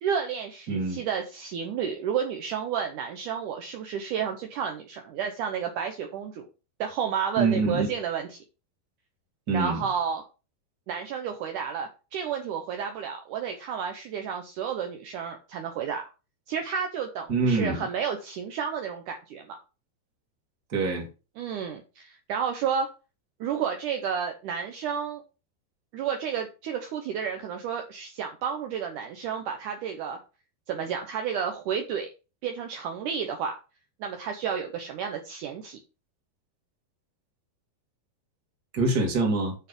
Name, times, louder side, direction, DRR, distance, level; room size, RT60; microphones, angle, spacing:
voice 1, 0.0-6.5 6.8-8.4 9.5-10.2 10.9-16.0 16.5-19.6 21.4-22.9 23.4-25.2 25.9-30.2 30.7-32.1 32.4-33.6 34.0-35.8, right 7 dB, 70° right, 4 dB, 2.2 m, -31 dB
voice 2, 0.7-1.0 7.4-7.9 9.5-9.8 17.3-17.8 20.7-21.1 38.7-39.5, right 3 dB, 30° right, 1 dB, 2.3 m, -25 dB
8.3 x 5.3 x 5.3 m, 0.32 s
omnidirectional pair, 4.2 m